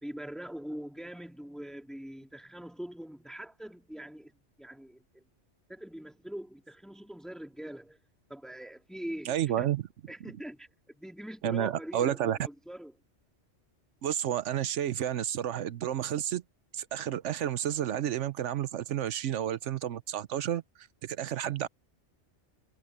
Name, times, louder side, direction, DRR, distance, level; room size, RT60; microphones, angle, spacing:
voice 1, 0.0-5.2 5.7-8.0 8.3-9.7 10.1-13.0, right 1 dB, ahead, 2.9 m, -43 dB
voice 2, 9.2-9.8 11.4-12.4 14.0-16.4 16.7-20.6 21.0-21.7, right 10 dB, 85° right, 1.1 m, -31 dB
omnidirectional pair, 1.2 m